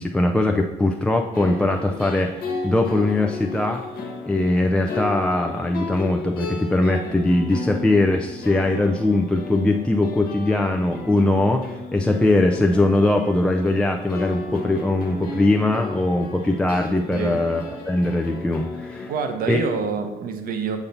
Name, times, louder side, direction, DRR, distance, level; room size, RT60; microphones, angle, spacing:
voice 1, 0.0-3.8 4.3-11.6 11.9-19.1 19.5-19.6, left 2 dB, 5° left, 2 dB, 0.3 m, -21 dB
sound 1, 1.3-19.1, left 3 dB, 60° left, 1.2 m, -34 dB
voice 2, 19.1-20.8, right 5 dB, 60° right, 7 dB, 0.8 m, -26 dB
7.1 x 2.7 x 5.5 m, 1.0 s
cardioid pair, 110°, 17 cm